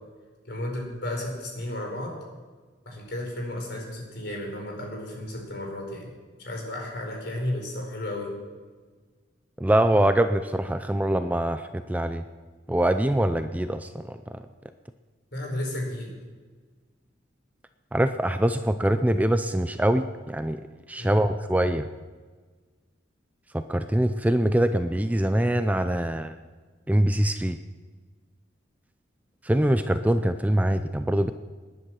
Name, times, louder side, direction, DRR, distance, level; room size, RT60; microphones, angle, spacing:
voice 1, 0.4-2.1 2.8-6.1 6.4-8.3 15.3-16.1 21.0-21.2, left 1 dB, 60° left, 0 dB, 4.6 m, -33 dB
voice 2, 9.6-12.2 12.7-14.2 17.9-20.6 20.9-21.9 23.5-26.3 26.9-27.6 29.4-31.3, right 1 dB, 10° right, 9 dB, 0.4 m, -23 dB
19.5 x 10.5 x 6.1 m, 1.4 s
head